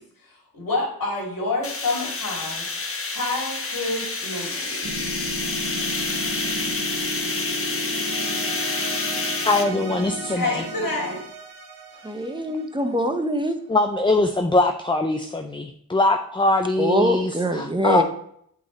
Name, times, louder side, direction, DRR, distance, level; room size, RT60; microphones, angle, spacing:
voice 1, 0.0-2.7 3.0-4.9 10.3-11.2, left 2 dB, 60° left, -2 dB, 2.7 m, -28 dB
sound 1, 1.6-9.6, left 3 dB, 35° left, 1.0 m, -28 dB
sound 2, 4.8-11.2, equal, 40° right, 1.1 m, -34 dB
sound 3, 8.0-13.3, right 5 dB, 80° right, 1.1 m, -39 dB
voice 2, 9.1-10.6 13.7-18.0, left 2 dB, 15° left, 5 dB, 0.4 m, -22 dB
voice 3, 12.0-13.6 16.8-18.0, equal, 15° right, 6 dB, 0.7 m, -23 dB
8.3 x 4.0 x 3.9 m, 0.69 s
wide cardioid pair, 100°, 38 cm